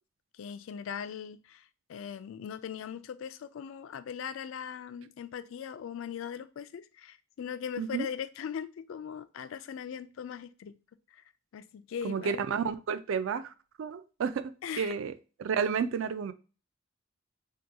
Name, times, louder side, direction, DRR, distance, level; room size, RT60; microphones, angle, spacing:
voice 1, 0.4-10.8 11.1-11.2 11.5-12.4 14.6-14.9, left 8 dB, 70° left, 0.3 m, -40 dB
voice 2, 12.0-15.1 15.4-16.3, right 6 dB, 70° right, 0.3 m, -31 dB
2.8 x 2.2 x 3.5 m
head